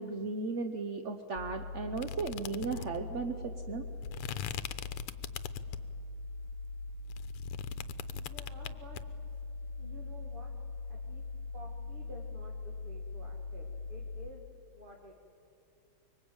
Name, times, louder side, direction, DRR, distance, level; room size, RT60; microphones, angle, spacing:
voice 1, 0.0-3.9, right 4 dB, 50° right, 6 dB, 0.9 m, -36 dB
sound 1, 1.4-14.3, left 3 dB, 70° left, 1.8 m, -42 dB
sound 2, 2.0-6.0 6.5-9.0, left 11 dB, 85° left, 1.7 m, -41 dB
voice 2, 8.1-9.0 9.7-10.5 10.9-11.2 11.5-15.2, equal, 25° right, 0 dB, 2.0 m, -52 dB
24.5 x 23.5 x 8.9 m, 2.7 s
omnidirectional pair, 2.4 m